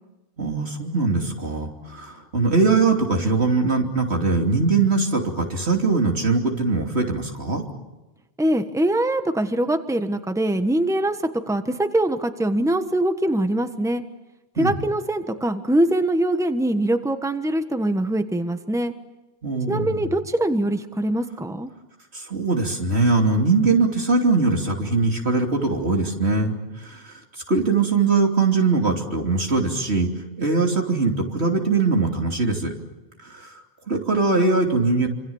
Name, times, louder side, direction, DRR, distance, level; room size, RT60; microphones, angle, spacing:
voice 1, 0.4-7.6 14.6-14.7 19.4-20.1 22.1-27.2 27.5-30.1 30.4-32.7 33.2-33.6 33.9-35.1, right 3 dB, 85° right, 2 dB, 3.4 m, -21 dB
voice 2, 8.4-11.2 11.5-14.0 14.6-18.9 19.7-21.7, right 1 dB, 5° right, 8 dB, 1.3 m, -23 dB
27.0 x 26.5 x 7.3 m, 1.1 s
omnidirectional pair, 1.1 m